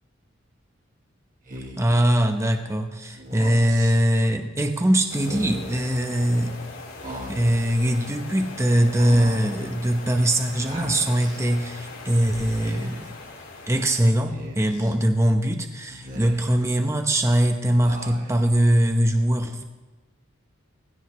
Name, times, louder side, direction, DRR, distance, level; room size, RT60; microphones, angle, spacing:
Speech, 1.5-2.0 3.2-3.9 5.1-5.8 7.0-7.7 8.9-9.6 10.7-11.4 12.4-13.1 14.3-14.9 15.9-16.7 17.8-18.5, equal, 40° right, 1.5 m, -39 dB
voice 1, 1.8-6.6 7.3-13.1 13.7-19.6, right 1 dB, 15° right, 5 dB, 0.8 m, -22 dB
sound 1, 5.1-14.0, left 3 dB, 75° left, 4.1 m, -41 dB
19.0 x 16.0 x 3.2 m, 1.2 s
head